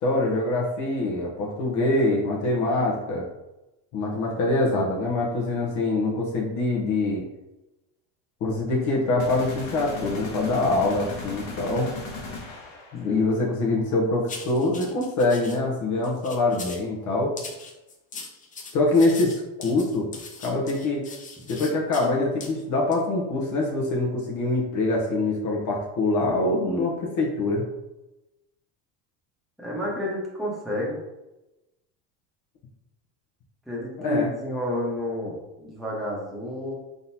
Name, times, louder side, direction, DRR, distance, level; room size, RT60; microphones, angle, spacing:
voice 1, 0.0-3.3 3.9-7.2 8.4-11.9 12.9-17.3 18.7-20.1 20.4-21.0 21.5-27.6 34.0-34.3, left 2 dB, 50° left, -2 dB, 1.1 m, -24 dB
sound 1, 9.2-13.1, left 3 dB, 90° left, 1.4 m, -37 dB
sound 2, 14.3-15.6 16.0-16.9 17.4-22.1 22.4-22.5 22.9-23.1, left 4 dB, 20° left, 0.5 m, -40 dB
voice 2, 29.6-31.0 33.7-36.7, left 1 dB, ahead, -6 dB, 1.1 m, -30 dB
3.8 x 3.8 x 2.8 m, 0.99 s
cardioid pair, 135°, 39 cm